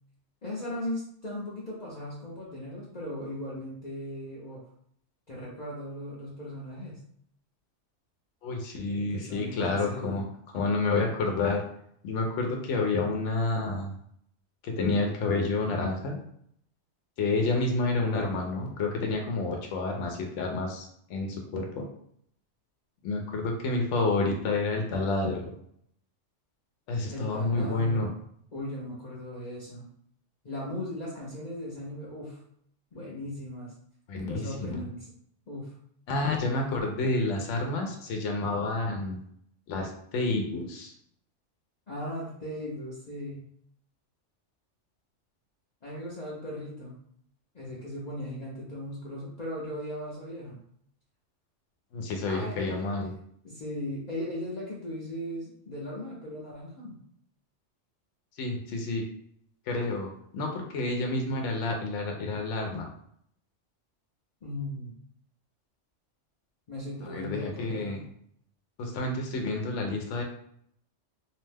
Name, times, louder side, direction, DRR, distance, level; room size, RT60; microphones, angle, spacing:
voice 1, 0.4-4.6 5.3-7.0 8.9-10.2 27.1-28.1 28.5-29.9 30.4-32.4 32.9-33.7 34.2-35.1 35.5-35.8 41.9-43.4 45.8-47.0 47.5-50.6 52.2-53.0 53.4-57.0 64.4-64.9 66.7-68.0, left 1 dB, 45° left, -6 dB, 0.6 m, -38 dB
voice 2, 8.4-10.3 10.5-11.6 12.0-13.9 14.6-16.2 17.2-21.9 23.0-25.5 26.9-28.1 34.1-34.8 36.1-39.2 39.7-40.9 51.9-53.1 58.4-59.0 59.7-62.9 67.0-68.0 68.8-70.2, left 3 dB, 75° left, 2 dB, 0.9 m, -29 dB
2.7 x 2.1 x 3.3 m, 0.67 s
omnidirectional pair, 1.3 m